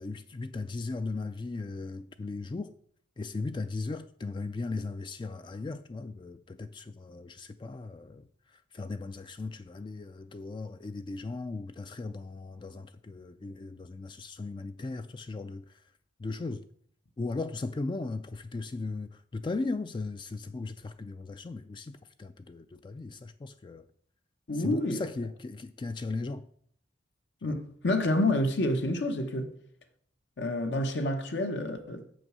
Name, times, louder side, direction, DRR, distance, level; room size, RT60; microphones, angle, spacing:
voice 1, 0.0-2.8 3.2-15.8 16.2-16.6 17.2-23.9 24.5-26.4 27.4-27.6, left 3 dB, 25° left, 0.3 m, -37 dB
voice 2, 24.5-25.1 27.4-29.5 30.4-32.1, left 1 dB, 70° left, 0.9 m, -28 dB
7.2 x 6.2 x 6.1 m
head